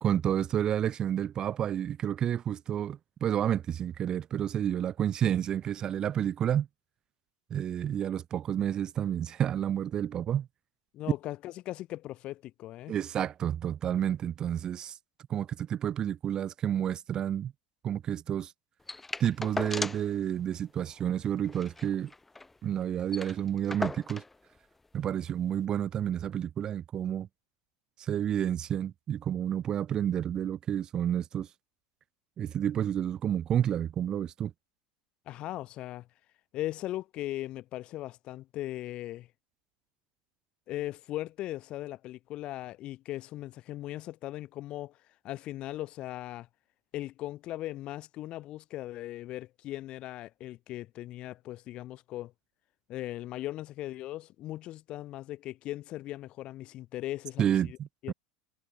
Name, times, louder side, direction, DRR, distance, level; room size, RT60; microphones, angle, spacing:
voice 1, 0.0-6.7 7.5-10.5 12.9-15.0 15.3-17.5 17.8-18.5 19.2-22.1 22.6-24.2 24.9-27.3 28.0-31.5 32.4-34.5 57.4-58.1, right 10 dB, 30° right, 0.6 m, -30 dB
voice 2, 10.9-13.0 35.3-36.1 36.5-39.3 40.7-45.0 45.2-46.5 46.9-52.3 52.9-57.8 58.0-58.1, left 15 dB, 40° left, 1.1 m, -38 dB
sound 1, 18.9-20.2 20.5-20.6 20.9-21.0 21.4-22.5 22.8-22.9 23.1-24.4 25.2-25.3, left 3 dB, 10° left, 0.9 m, -37 dB
supercardioid pair, 140°, 3 cm